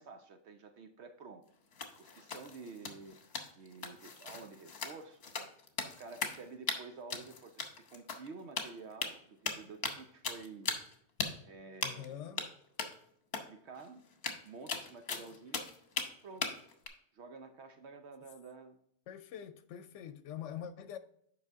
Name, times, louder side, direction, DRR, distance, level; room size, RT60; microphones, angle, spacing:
voice 1, 0.0-1.4 2.0-3.2 3.5-5.2 5.8-10.7 11.4-12.5 13.5-14.0 14.4-15.6 16.2-16.5 17.1-18.8, right 4 dB, 70° right, 1.0 m, -50 dB
sound 1, 1.7-6.4 6.7-6.8 7.1-8.3 8.6-9.1 9.5-10.0 10.2-10.9 11.2-11.3 11.8-12.1 12.4-12.5 12.8-12.9 13.3-13.4 13.8-13.9 14.1-16.1 16.4-16.9, left 4 dB, 60° left, 1.2 m, -38 dB
voice 2, 11.8-12.4 19.1-21.0, left 10 dB, 85° left, 0.9 m, -44 dB
8.0 x 5.3 x 3.5 m
omnidirectional pair, 1.2 m